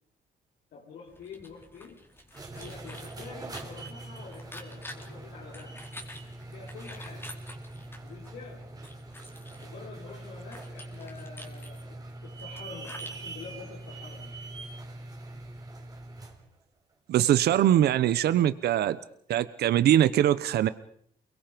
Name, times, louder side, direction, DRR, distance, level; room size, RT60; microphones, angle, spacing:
voice 1, 0.7-2.0 2.5-5.9 6.5-7.3 8.0-8.7 9.6-14.3, left 5 dB, 80° left, -2 dB, 4.6 m, -47 dB
sound 1, 1.1-13.5, left 1 dB, 15° left, 4.0 m, -49 dB
sound 2, 2.2-16.4, right 2 dB, 25° right, 4.2 m, -43 dB
voice 2, 17.1-19.0 19.3-20.7, right 11 dB, 90° right, 14 dB, 1.0 m, -22 dB
29.0 x 22.5 x 5.3 m, 0.64 s
cardioid pair, 140°, 16 cm